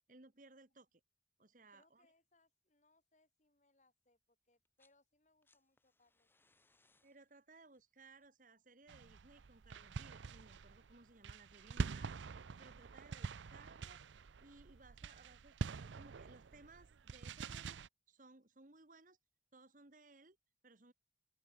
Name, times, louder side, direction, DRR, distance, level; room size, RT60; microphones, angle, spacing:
voice 1, 0.1-1.0 1.4-2.1 7.0-12.1 12.6-14.0 14.4-19.2 19.5-20.4 20.6-20.9, right 3 dB, 45° right, 1.6 m, -62 dB
voice 2, 1.7-6.6, left 2 dB, 40° left, 3.4 m, -76 dB
sound 1, 4.5-5.0 5.3-10.1 11.4-11.5, left 3 dB, 10° left, 3.9 m, -78 dB
sound 2, 8.9-17.9, right 4 dB, 85° right, 0.5 m, -45 dB
open air
head